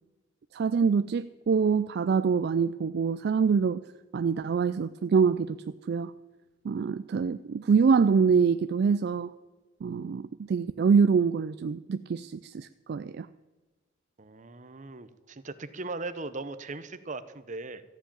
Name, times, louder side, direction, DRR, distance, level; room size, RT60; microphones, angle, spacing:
voice 1, 0.5-3.8 4.1-5.6 5.9-6.1 6.6-9.3 9.8-13.3, right 5 dB, 55° right, 13 dB, 0.3 m, -25 dB
voice 2, 14.2-17.8, right 3 dB, 35° right, 12 dB, 0.7 m, -39 dB
14.0 x 7.3 x 8.9 m, 1.3 s
head